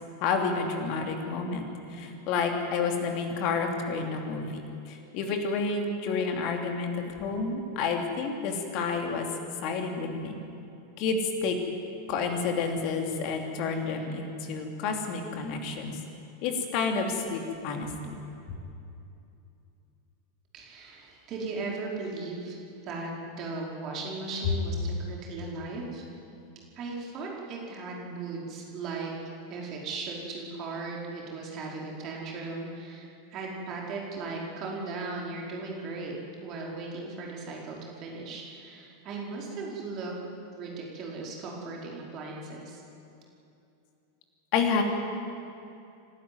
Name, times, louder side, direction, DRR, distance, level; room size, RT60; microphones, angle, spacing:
voice 1, 0.2-9.3 9.6-10.4 11.0-11.6 12.1-15.9 16.4-18.2 44.5-44.8, left 4 dB, 40° left, 4 dB, 3.0 m, -30 dB
voice 2, 20.5-22.6 22.8-26.0 26.7-29.1 29.5-36.2 36.4-40.1 40.6-42.8, right 3 dB, 35° right, -2 dB, 4.9 m, -37 dB
27.0 x 12.5 x 9.5 m, 2.7 s
figure-of-eight pair, 90°, 0 cm